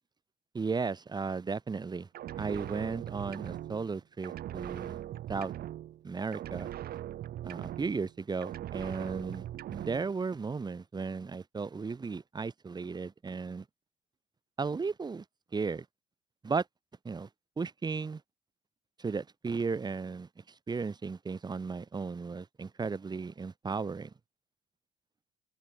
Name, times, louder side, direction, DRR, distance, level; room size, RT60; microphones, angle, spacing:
voice 1, 0.5-2.1 2.4-5.0 5.3-5.5 6.0-6.7 7.4-9.4 9.7-13.6 14.6-15.2 15.5-15.9 16.4-16.6 17.0-17.3 17.6-18.2 19.0-20.3 20.7-24.1, right 4 dB, 25° right, 2.5 m, -35 dB
sound 1, 2.1-6.1 6.3-8.1 8.4-10.1, right 12 dB, 65° right, 3.6 m, -40 dB
open air
cardioid pair, 110°, 17 cm